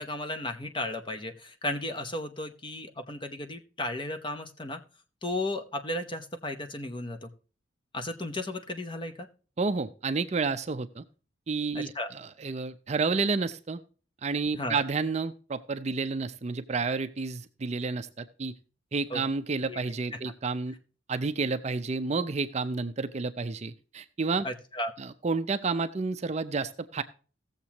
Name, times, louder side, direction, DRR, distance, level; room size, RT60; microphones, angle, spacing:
voice 1, 0.0-4.8 5.2-7.3 7.9-9.3 11.7-12.1 14.6-14.8 19.1-19.2 19.7-19.8 20.1-20.2 24.4-24.9, left 1 dB, 25° left, 7 dB, 0.8 m, -34 dB
voice 2, 9.6-11.0 11.5-13.8 14.2-18.5 18.9-20.7 21.1-24.5 25.0-27.0, right 4 dB, 35° right, 11 dB, 0.5 m, -30 dB
17.0 x 7.3 x 2.9 m, 0.37 s
head